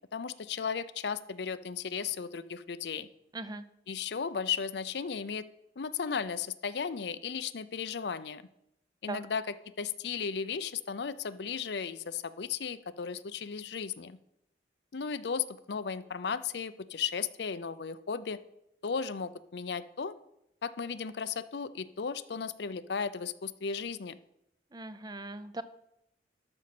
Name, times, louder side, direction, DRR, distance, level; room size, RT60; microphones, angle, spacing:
voice 1, 0.1-3.1 3.9-5.5 5.8-8.4 9.0-14.2 14.9-18.4 18.8-20.1 20.6-24.2, left 6 dB, 70° left, 14 dB, 0.5 m, -35 dB
voice 2, 3.3-3.6 9.1-9.2 24.7-25.6, right 3 dB, 25° right, 13 dB, 0.5 m, -39 dB
12.5 x 6.3 x 5.9 m, 0.82 s
head